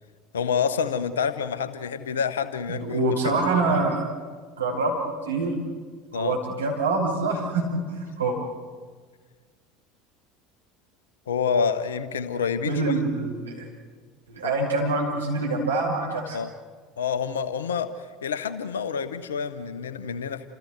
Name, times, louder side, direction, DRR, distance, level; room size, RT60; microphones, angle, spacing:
voice 1, 0.3-3.3 6.1-6.4 11.3-12.9 14.4-14.5 16.3-16.5 17.0-20.5, left 6 dB, 75° left, 12 dB, 1.1 m, -28 dB
voice 2, 2.7-4.0 4.6-4.9 5.3-5.6 6.1-8.4 12.6-13.7 14.3-16.4, right 3 dB, 80° right, -2 dB, 6.0 m, -25 dB
30.0 x 27.5 x 4.7 m, 1.5 s
figure-of-eight pair, 70°, 0 cm